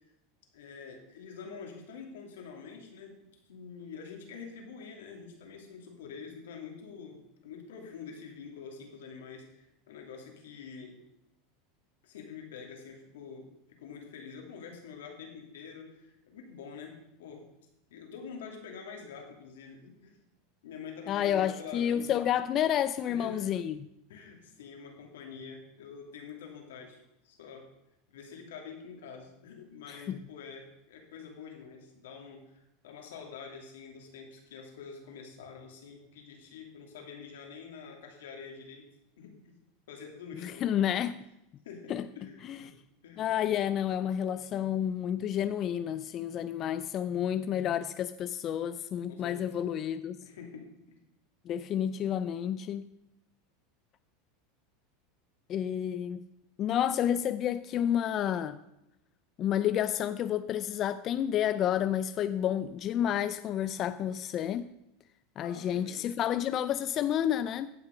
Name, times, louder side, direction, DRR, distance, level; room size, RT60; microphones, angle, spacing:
voice 1, 0.5-11.0 12.0-13.5 13.8-17.4 17.9-20.2 20.6-22.2 23.1-23.5 24.1-27.7 28.1-38.9 39.2-39.6 39.9-40.7 41.6-42.8 43.0-43.2 49.1-49.6 50.2-50.7 65.4-66.0, left 6 dB, 90° left, 2.6 m, -46 dB
voice 2, 21.1-23.8 29.9-30.2 40.3-41.1 41.9-42.1 42.4-42.6 43.2-50.2 51.5-52.9 55.5-56.2 56.6-58.6 59.4-64.7 65.4-67.7, left 10 dB, 40° left, 0.4 m, -30 dB
15.5 x 6.0 x 5.2 m
supercardioid pair, 125°, 0 cm